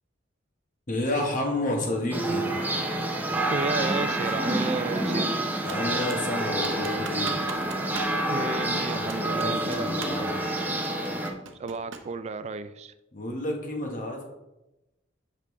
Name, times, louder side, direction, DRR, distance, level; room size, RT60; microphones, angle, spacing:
voice 1, 0.9-2.5 5.6-7.4 9.2-10.4 13.1-14.2, left 1 dB, 45° left, 1 dB, 1.2 m, -30 dB
sound 1, 2.1-11.3, right 1 dB, 10° right, 0.7 m, -28 dB
voice 2, 3.5-5.4 8.3-10.4 11.6-12.9, right 4 dB, 35° right, 12 dB, 0.3 m, -33 dB
Computer keyboard, 5.7-6.3 6.6-8.2 8.4-8.5 9.1-10.3 10.6-12.2, right 5 dB, 75° right, 0.7 m, -42 dB
6.6 x 5.1 x 3.2 m, 0.99 s
head